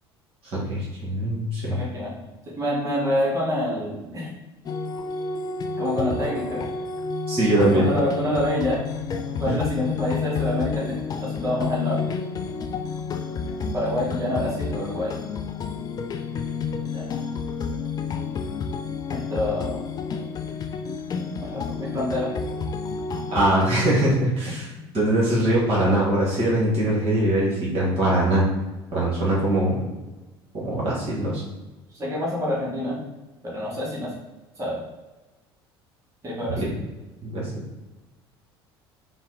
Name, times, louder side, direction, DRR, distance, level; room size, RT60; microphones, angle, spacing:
voice 1, 0.5-1.8 7.3-7.9 9.5-9.6 23.3-24.7 24.9-28.4 28.9-29.7 30.5-31.4 36.6-36.7 37.2-37.5, right 1 dB, 45° right, -6 dB, 1.3 m, -22 dB
voice 2, 1.7-2.1 2.4-4.3 5.8-6.6 7.5-8.8 9.4-12.0 13.7-15.2 16.8-17.1 19.1-19.8 21.4-22.3 31.9-33.0 33.4-34.2 34.6-34.8 36.2-36.7, left 1 dB, 25° right, -5 dB, 1.5 m, -27 dB
sound 1, 4.7-24.2, left 5 dB, 30° left, 0.3 m, -30 dB
4.1 x 2.1 x 3.7 m, 1.1 s
hypercardioid pair, 65°, 13 cm